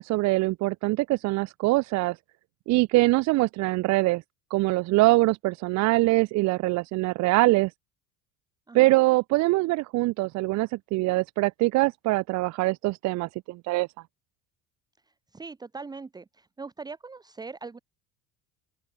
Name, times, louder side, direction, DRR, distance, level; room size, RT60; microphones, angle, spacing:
voice 1, 0.0-2.2 2.7-4.2 4.5-7.7 8.7-13.9, right 21 dB, 50° right, 0.9 m, -23 dB
voice 2, 15.3-17.8, right 4 dB, 10° right, 1.4 m, -41 dB
open air
cardioid pair, 165°, 35 cm